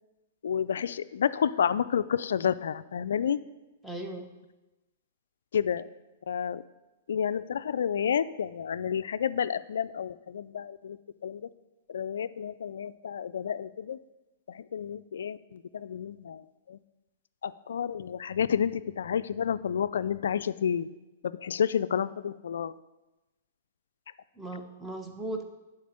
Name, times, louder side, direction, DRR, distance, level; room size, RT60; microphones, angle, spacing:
voice 1, 0.4-3.4 5.5-5.9 6.3-6.6 7.1-11.0 11.2-11.5 11.9-14.0 14.5-16.8 17.4-20.9 21.2-22.8, left 8 dB, 75° left, 15 dB, 0.3 m, -30 dB
voice 2, 3.8-4.3 24.3-25.4, right 2 dB, 5° right, 3 dB, 1.2 m, -37 dB
9.2 x 4.3 x 6.6 m, 1.0 s
hypercardioid pair, 120°, 0 cm